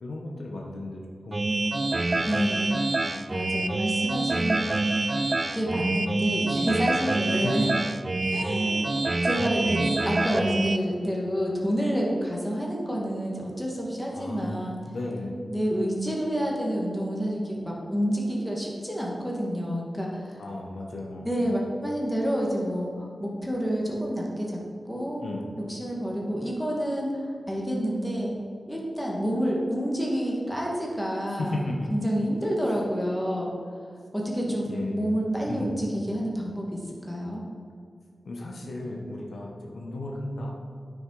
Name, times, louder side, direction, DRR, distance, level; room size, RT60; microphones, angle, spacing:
voice 1, 0.0-1.7 2.1-2.2 3.5-3.8 7.2-7.5 8.2-8.4 14.1-15.4 20.4-21.7 25.2-25.5 31.4-31.9 34.5-35.2 35.4-35.7 38.2-40.7, left 2 dB, 75° left, -1 dB, 1.4 m, -35 dB
sound 1, 1.3-10.8, right 2 dB, 40° right, 0.4 m, -26 dB
voice 2, 2.2-2.8 3.3-4.7 5.5-7.7 8.3-8.9 9.2-14.8 15.5-20.4 21.3-24.6 24.9-25.2 25.7-28.3 28.7-31.6 31.9-33.5 34.1-34.7 34.9-37.4, equal, ahead, -3 dB, 2.2 m, -28 dB
9.3 x 6.4 x 4.9 m, 2.2 s
cardioid pair, 65°, 0 cm